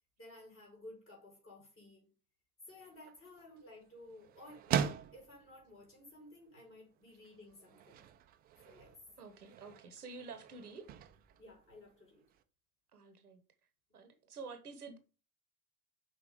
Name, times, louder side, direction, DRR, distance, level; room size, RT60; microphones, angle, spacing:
voice 1, 0.2-2.1 2.7-8.0 8.7-9.0 11.4-12.3, left 1 dB, 30° left, 3.5 m, -55 dB
sound 1, 2.7-12.4, right 9 dB, 20° right, 0.4 m, -43 dB
voice 2, 9.2-10.9 12.9-13.4 13.9-15.0, right 4 dB, 80° right, 0.9 m, -49 dB
5.6 x 3.8 x 4.7 m
figure-of-eight pair, 65°, 45 cm